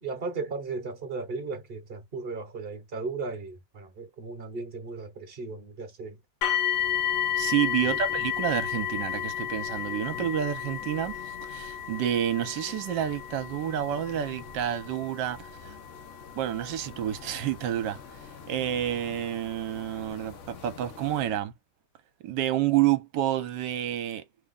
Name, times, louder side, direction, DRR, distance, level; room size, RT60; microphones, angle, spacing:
voice 1, 0.0-6.2 7.8-8.1, right 4 dB, 40° right, 1.0 m, -36 dB
sound 1, 6.4-19.3 20.1-20.2 20.8-20.9, left 10 dB, 70° left, 1.1 m, -33 dB
sound 2, 6.7-21.4, left 5 dB, 55° left, 0.9 m, -48 dB
voice 2, 7.4-15.8 16.4-18.0 18.5-21.5 22.2-24.2, right 11 dB, 70° right, 1.4 m, -29 dB
3.4 x 2.2 x 3.7 m
omnidirectional pair, 2.0 m